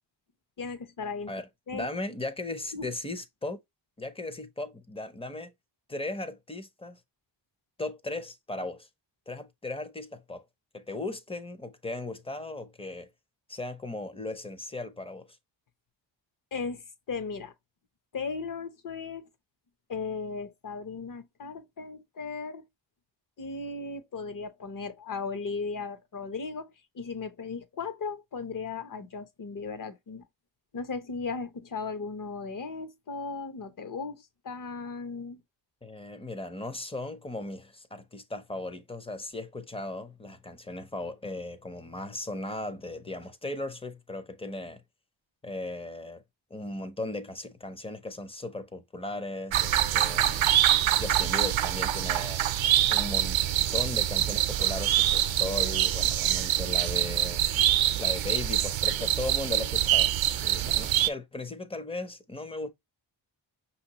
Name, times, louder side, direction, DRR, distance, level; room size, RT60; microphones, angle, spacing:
voice 1, 0.6-1.3 1.7-2.1 2.7-2.9 16.5-16.8 17.1-17.5 18.1-19.3 19.9-22.6 23.4-30.2 30.7-35.4, left 4 dB, 45° left, 0.8 m, -36 dB
voice 2, 1.3-3.6 4.0-5.5 5.9-7.0 7.8-8.9 9.3-10.4 10.7-13.1 13.5-15.3 35.8-44.8 45.4-46.2 46.5-50.5 51.0-52.4 52.9-53.4 53.7-57.4 58.0-60.1 60.4-62.7, left 2 dB, 15° left, 0.5 m, -37 dB
sound 1, 49.5-61.1, right 12 dB, 85° right, 0.5 m, -25 dB
5.9 x 2.8 x 2.8 m
wide cardioid pair, 155°, 45 cm